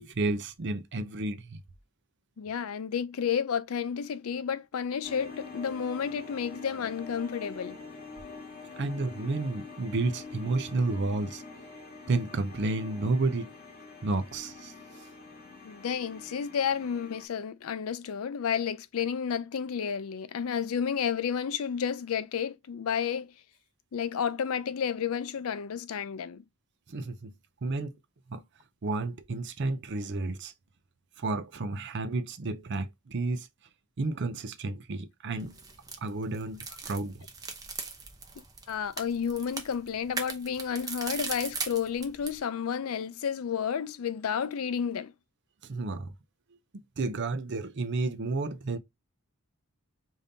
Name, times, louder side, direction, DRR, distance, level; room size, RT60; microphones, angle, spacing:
voice 1, 0.0-1.6 8.8-11.4 12.1-13.5 14.0-14.7 26.9-27.3 27.6-28.0 28.3-28.4 28.8-30.5 31.2-33.5 34.0-35.5 36.0-37.2 45.6-46.1 47.0-48.8, right 3 dB, 50° right, 0.6 m, -31 dB
voice 2, 2.4-7.8 15.6-23.3 23.9-26.4 38.7-45.1, left 7 dB, 70° left, 0.4 m, -31 dB
sound 1, 5.0-17.3, left 4 dB, 45° left, 1.6 m, -45 dB
sound 2, 35.4-42.4, right 4 dB, 15° right, 0.7 m, -39 dB
5.1 x 2.7 x 2.6 m
head